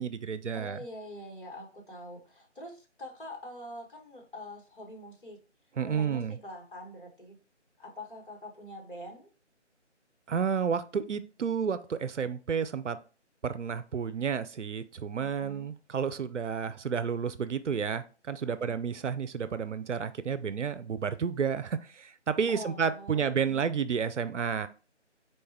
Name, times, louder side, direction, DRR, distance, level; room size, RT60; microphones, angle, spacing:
voice 1, 0.0-0.8 5.8-6.4 10.3-13.0 13.4-24.7, right 6 dB, 75° right, 13 dB, 0.5 m, -31 dB
voice 2, 0.5-5.4 5.8-7.4 7.8-9.3 15.2-15.7 18.4-18.8 22.5-23.6, equal, 45° left, 0 dB, 1.5 m, -45 dB
4.3 x 3.2 x 3.3 m, 0.35 s
figure-of-eight pair, 160°, 36 cm